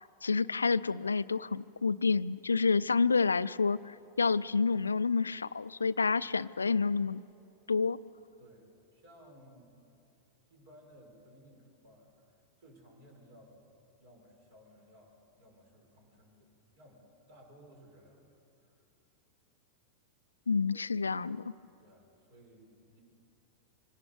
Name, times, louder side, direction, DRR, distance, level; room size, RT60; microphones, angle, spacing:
voice 1, 0.0-7.2 7.7-8.0 20.5-21.4, left 4 dB, 75° left, 17 dB, 0.4 m, -29 dB
voice 2, 8.4-9.9 10.5-18.8 20.7-21.1 21.8-23.0, equal, 55° right, 0 dB, 6.1 m, -59 dB
25.5 x 18.5 x 7.1 m, 2.7 s
figure-of-eight pair, 90°, 0 cm